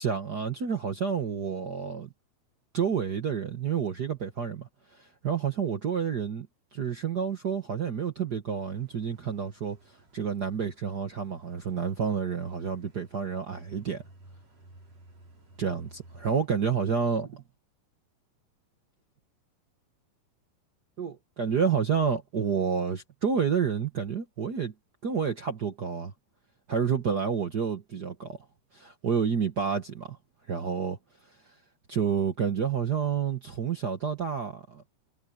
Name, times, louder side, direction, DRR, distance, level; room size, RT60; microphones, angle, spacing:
voice 1, 0.0-2.1 2.7-6.5 6.7-9.8 10.1-14.0 15.6-17.3 21.0-24.7 25.0-26.1 26.7-28.4 28.7-30.2 30.5-31.0 31.9-34.8, right 6 dB, 75° right, 0.9 m, -29 dB
sound 1, 8.5-16.5, right 1 dB, 45° right, 6.4 m, -56 dB
omnidirectional pair, 4.1 m